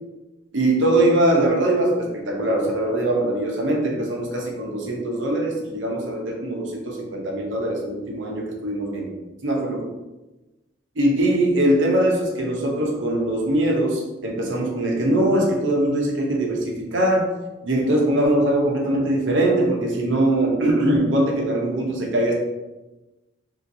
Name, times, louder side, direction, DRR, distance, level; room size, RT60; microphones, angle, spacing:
voice 1, 0.5-9.1 9.4-9.8 11.0-17.3 17.6-22.3, right 1 dB, 70° right, -1 dB, 0.7 m, -21 dB
3.1 x 2.8 x 2.6 m, 1.1 s
head